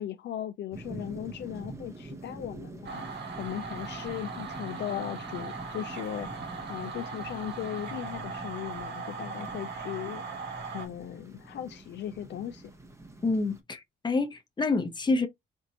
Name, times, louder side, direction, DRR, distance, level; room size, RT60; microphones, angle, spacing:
voice 1, 0.0-6.3 6.7-10.2 10.6-12.7, left 11 dB, 60° left, 0.4 m, -38 dB
sound 1, 0.7-13.6, right 2 dB, 15° right, 0.8 m, -45 dB
sound 2, 2.8-10.9, right 4 dB, 60° right, 1.5 m, -39 dB
voice 2, 13.2-15.3, left 3 dB, 20° left, 0.8 m, -28 dB
4.4 x 2.5 x 2.8 m
cardioid pair, 90°, 20 cm